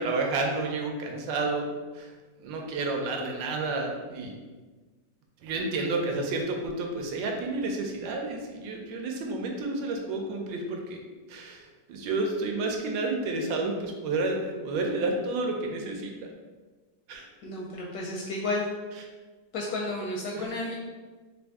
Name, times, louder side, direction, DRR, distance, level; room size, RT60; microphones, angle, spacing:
voice 1, 0.0-1.7 1.9-2.1 2.4-4.4 5.4-11.0 11.3-16.3 17.1-17.3 20.3-20.4, right 3 dB, 80° right, 1 dB, 1.3 m, -30 dB
voice 2, 17.4-18.7 19.5-20.8, left 2 dB, 75° left, -2 dB, 0.9 m, -32 dB
3.4 x 2.6 x 3.4 m, 1.3 s
omnidirectional pair, 2.0 m